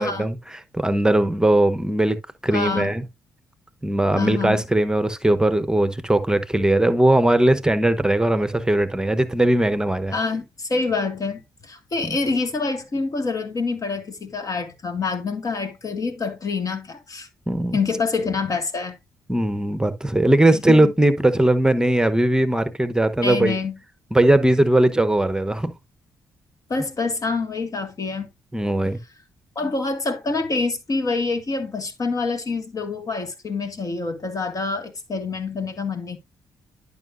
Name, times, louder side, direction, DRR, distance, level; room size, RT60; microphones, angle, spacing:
voice 1, 0.0-2.2 2.4-3.0 3.8-10.1 12.0-12.2 17.5-17.8 19.3-23.6 24.1-25.7 28.5-29.0, right 1 dB, 10° right, 0.9 m, -19 dB
voice 2, 2.5-2.9 4.2-4.6 10.1-17.3 17.7-19.0 20.7-20.9 23.2-23.7 26.7-28.3 29.6-36.2, left 4 dB, 45° left, 1.9 m, -26 dB
11.0 x 5.5 x 2.6 m
hypercardioid pair, 50°, 8 cm